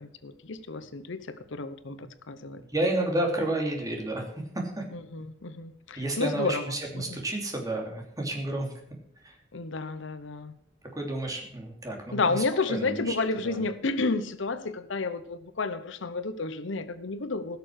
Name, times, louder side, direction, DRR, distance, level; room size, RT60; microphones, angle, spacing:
voice 1, 0.0-2.6 4.9-7.2 9.5-10.5 12.1-17.6, left 3 dB, 70° left, 12 dB, 0.8 m, -31 dB
voice 2, 2.6-4.8 6.0-8.7 9.2-9.4 10.9-12.3 12.7-13.1 13.4-13.6, right 1 dB, 20° right, 1 dB, 2.9 m, -31 dB
16.0 x 6.9 x 6.3 m, 0.72 s
head